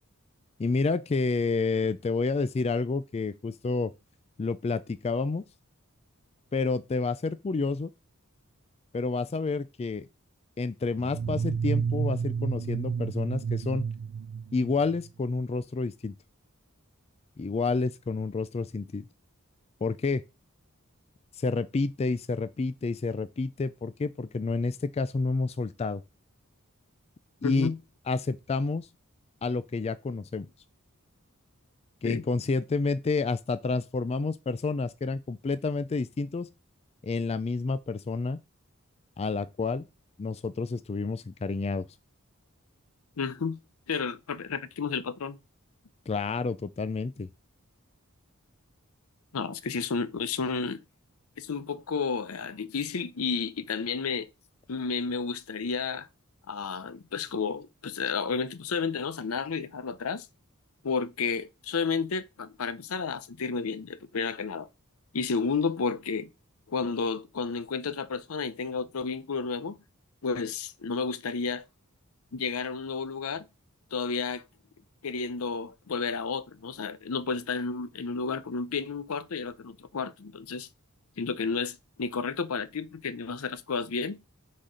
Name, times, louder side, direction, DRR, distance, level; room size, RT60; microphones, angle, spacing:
voice 1, 0.6-3.9 4.4-5.4 6.5-7.9 8.9-10.1 10.6-13.8 14.5-16.1 17.4-19.0 19.8-20.2 21.4-26.0 27.4-27.7 28.1-28.9 29.4-30.5 32.0-36.5 37.0-38.4 39.2-39.8 40.2-41.9 46.1-47.3, left 3 dB, 30° left, 0.3 m, -29 dB
sound 1, 11.0-15.1, right 6 dB, 65° right, 0.4 m, -30 dB
voice 2, 27.4-27.8 32.0-32.2 43.2-43.6 43.9-45.4 49.3-50.8 51.4-54.3 54.7-56.1 56.5-60.3 60.8-64.7 65.1-66.3 66.7-69.8 70.2-71.6 72.3-73.5 73.9-74.4 75.0-80.7 81.2-84.2, left 5 dB, 75° left, 0.6 m, -31 dB
6.3 x 4.2 x 5.0 m
head